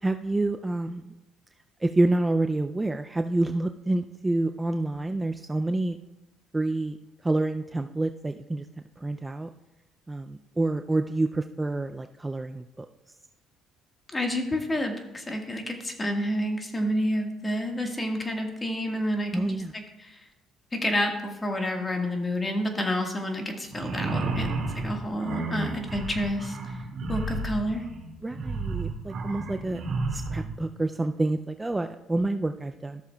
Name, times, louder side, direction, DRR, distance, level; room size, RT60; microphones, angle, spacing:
voice 1, 0.0-1.1 1.8-6.0 6.5-7.0 7.2-8.7 9.0-9.5 10.1-12.9 19.3-19.7 28.2-29.8 30.1-33.0, right 2 dB, 15° right, 7 dB, 0.4 m, -28 dB
voice 2, 14.1-20.2 20.7-24.5 24.7-26.6 27.1-27.8, equal, 20° left, 3 dB, 1.6 m, -29 dB
sound 1, 23.7-30.5, right 3 dB, 65° right, 2.2 m, -32 dB
14.0 x 6.8 x 2.3 m, 1.0 s
supercardioid pair, 80°, 0 cm